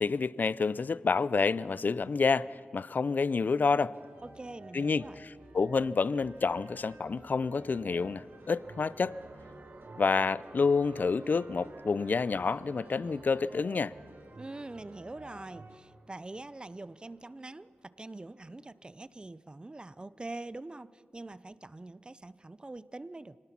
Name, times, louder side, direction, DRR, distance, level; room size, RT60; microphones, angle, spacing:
voice 1, 0.0-4.0 4.7-9.2 10.0-13.9, left 4 dB, 55° left, 0.4 m, -29 dB
sound 1, 3.9-15.8, right 2 dB, 85° right, 2.4 m, -53 dB
voice 2, 4.2-5.2 14.4-23.4, right 2 dB, 25° right, 0.5 m, -44 dB
sound 2, 4.7-5.6 7.9-19.2, right 2 dB, 60° right, 1.9 m, -55 dB
25.5 x 19.0 x 5.9 m
wide cardioid pair, 100°, 4 cm